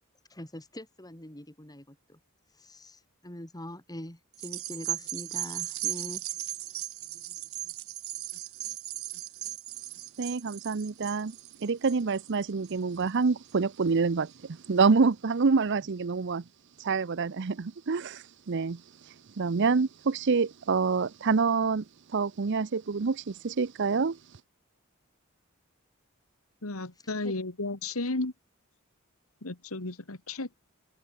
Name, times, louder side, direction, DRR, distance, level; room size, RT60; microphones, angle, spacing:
voice 1, 0.3-2.2 2.6-6.2 27.2-27.3, left 1 dB, 20° left, 3.6 m, -43 dB
sound 1, 4.3-13.0 13.5-13.6, right 14 dB, 85° right, 4.3 m, -37 dB
voice 2, 10.2-16.4 16.8-24.4, right 4 dB, 55° right, 0.6 m, -27 dB
voice 3, 26.6-28.3 29.4-30.6, left 2 dB, 85° left, 2.1 m, -33 dB
open air
head